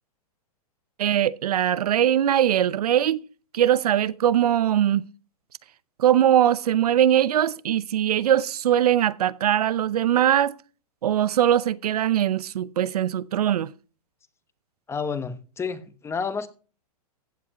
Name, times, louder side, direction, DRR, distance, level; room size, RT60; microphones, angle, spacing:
voice 1, 1.0-3.2 3.5-5.0 6.0-10.5 11.0-13.7, right 10 dB, 75° right, 0.7 m, -21 dB
voice 2, 14.9-16.5, left 5 dB, 15° left, 1.1 m, -30 dB
15.0 x 8.3 x 3.0 m
hypercardioid pair, 125°, 20 cm